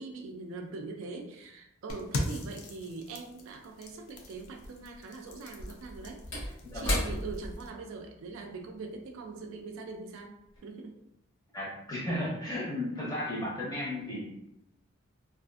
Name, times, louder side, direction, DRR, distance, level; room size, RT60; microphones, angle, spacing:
voice 1, 0.0-10.3 10.6-11.0, right 3 dB, 65° right, 3 dB, 0.3 m, -42 dB
sound 1, 1.9-7.7, left 1 dB, 75° left, 0.4 m, -40 dB
Slam / Wood, 3.9-4.0 5.4-10.1 10.4-10.6, left 1 dB, 55° left, 1.0 m, -37 dB
voice 2, 6.6-7.1 11.5-14.3, left 1 dB, 15° left, -6 dB, 0.6 m, -34 dB
2.4 x 2.4 x 2.3 m, 0.83 s
head